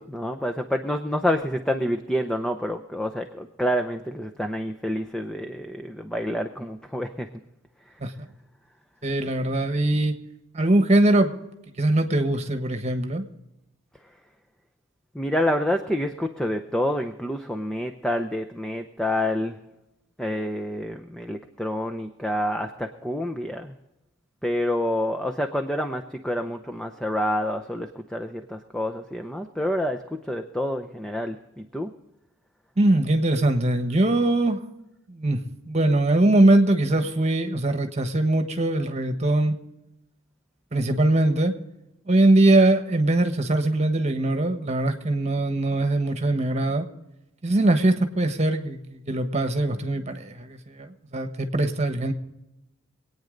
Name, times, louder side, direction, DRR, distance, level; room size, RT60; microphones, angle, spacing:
voice 1, 0.0-7.3 15.1-19.6 20.2-23.7 24.4-31.9, left 1 dB, 5° left, 5 dB, 0.7 m, -28 dB
voice 2, 9.0-10.2 10.5-11.4 11.8-13.3 32.8-34.6 35.1-35.4 35.7-39.6 40.7-41.6 42.1-46.9 47.4-52.1, right 2 dB, 30° right, 7 dB, 1.3 m, -21 dB
24.0 x 9.2 x 3.9 m, 0.93 s
head